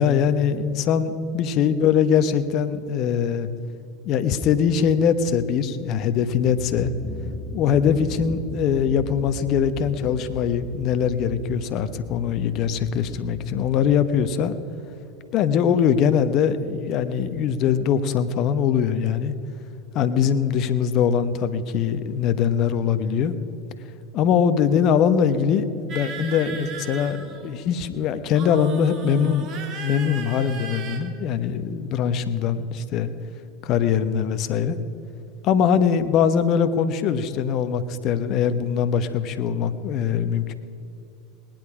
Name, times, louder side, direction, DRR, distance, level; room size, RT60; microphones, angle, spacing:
voice 1, 0.0-3.5 4.0-6.9 7.5-14.5 15.3-19.3 19.9-23.3 24.1-27.2 27.4-29.5 29.7-33.1 33.6-34.8 35.4-40.5, left 7 dB, 50° left, 11 dB, 1.0 m, -22 dB
sound 1, 5.8-14.0, left 1 dB, 35° left, 1.4 m, -38 dB
sound 2, 25.9-27.7 28.3-31.0, right 5 dB, 45° right, 2.0 m, -37 dB
19.5 x 10.5 x 5.0 m, 2.9 s
hypercardioid pair, 85°, 0 cm